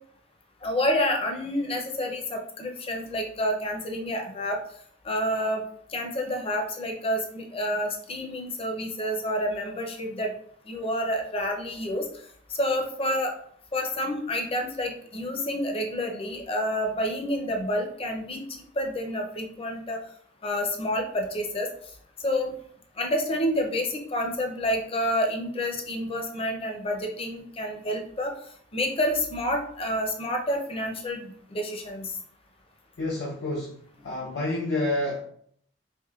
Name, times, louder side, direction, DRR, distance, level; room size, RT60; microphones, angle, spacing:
voice 1, 0.6-4.6 5.0-5.6 5.9-10.3 10.7-12.1 12.6-13.3 13.7-20.0 20.4-21.7 22.2-22.5 23.0-28.3 28.7-32.1, equal, 30° left, 3 dB, 0.5 m, -29 dB
voice 2, 33.0-33.8 34.0-35.2, left 2 dB, 75° left, -4 dB, 0.6 m, -28 dB
3.5 x 2.9 x 2.3 m, 0.63 s
head